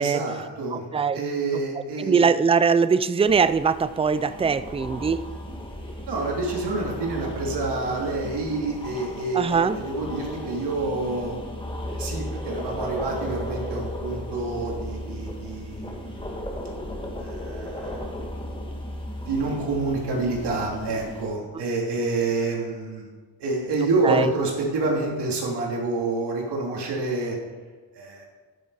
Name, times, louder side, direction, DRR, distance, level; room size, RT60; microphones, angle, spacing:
voice 1, 0.0-0.8 1.1-2.2 6.1-11.3 11.9-16.4 17.2-18.0 19.2-23.1 23.4-27.4 27.9-28.3, right 3 dB, 80° right, -2 dB, 3.1 m, -28 dB
voice 2, 0.7-1.2 2.0-5.3 9.3-9.8 24.0-24.3, right 5 dB, 15° right, 14 dB, 0.3 m, -21 dB
sound 1, 3.3-21.3, left 1 dB, 10° left, 2.0 m, -35 dB
11.5 x 10.5 x 4.9 m, 1.4 s
cardioid pair, 125°, 40 cm